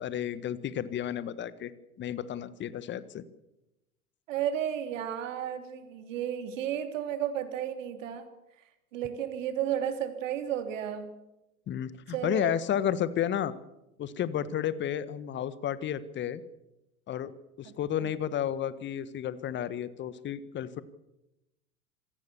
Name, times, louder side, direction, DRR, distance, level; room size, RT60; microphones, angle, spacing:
voice 1, 0.0-1.7 2.0-3.2 11.7-13.5 14.0-16.4 17.1-17.3 17.6-20.8, left 10 dB, 25° left, 16 dB, 1.4 m, -32 dB
voice 2, 4.3-8.3 8.9-11.1 12.1-12.5 18.0-18.1, right 10 dB, 55° right, 8 dB, 3.3 m, -33 dB
26.0 x 18.0 x 7.1 m, 0.92 s
figure-of-eight pair, 95°, 44 cm